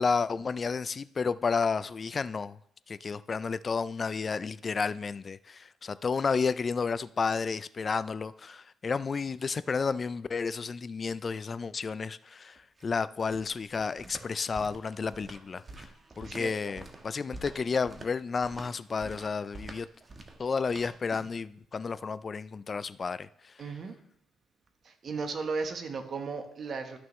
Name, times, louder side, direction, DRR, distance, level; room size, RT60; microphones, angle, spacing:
voice 1, 0.0-2.6 2.9-15.9 16.2-19.9 20.4-23.5, left 5 dB, 40° left, 0.3 m, -31 dB
sound 1, 12.6-21.4, right 2 dB, 30° right, 1.2 m, -47 dB
voice 2, 16.2-16.7 23.6-23.9 24.8-27.0, right 4 dB, 50° right, 1.2 m, -36 dB
13.0 x 6.0 x 3.2 m
cardioid pair, 90°, 0 cm